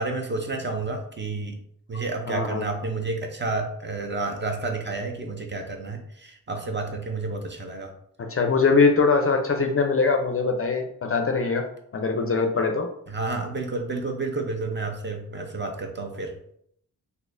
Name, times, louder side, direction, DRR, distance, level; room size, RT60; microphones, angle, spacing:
voice 1, 0.0-1.6 1.9-7.9 13.1-16.4, right 3 dB, 30° right, 3 dB, 0.5 m, -30 dB
voice 2, 2.3-2.7 8.2-11.6 11.9-12.9, left 4 dB, 40° left, 4 dB, 0.4 m, -22 dB
3.9 x 2.7 x 2.5 m, 0.70 s
wide cardioid pair, 130°, 37 cm